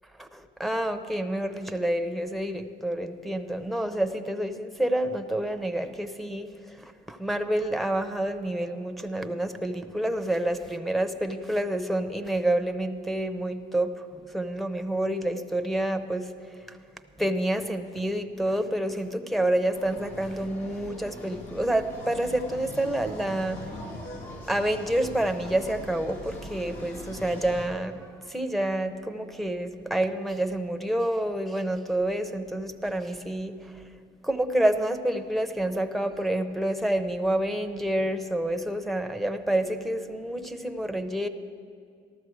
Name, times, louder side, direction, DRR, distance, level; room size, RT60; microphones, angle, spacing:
voice 1, 0.2-16.8 17.2-23.6 24.3-33.9 34.2-41.3, right 1 dB, ahead, 7 dB, 0.7 m, -28 dB
sound 1, 19.7-27.7, left 1 dB, 90° left, 2.0 m, -41 dB
14.5 x 12.5 x 4.7 m, 2.3 s
cardioid pair, 90°, 20 cm